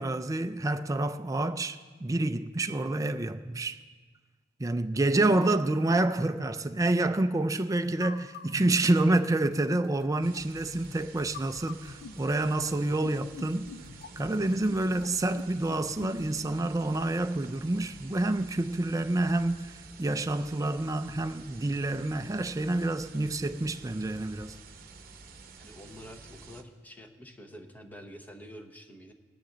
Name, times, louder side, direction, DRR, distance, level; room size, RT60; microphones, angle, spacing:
voice 1, 0.0-3.8 4.6-13.7 14.2-24.6, right 2 dB, 20° right, 0.4 m, -28 dB
sound 1, 7.8-16.3, left 5 dB, 55° left, 0.4 m, -46 dB
sound 2, 10.2-26.6, right 4 dB, 50° right, 0.9 m, -50 dB
voice 2, 25.6-29.1, equal, 10° left, 0.9 m, -48 dB
18.5 x 10.0 x 3.9 m
head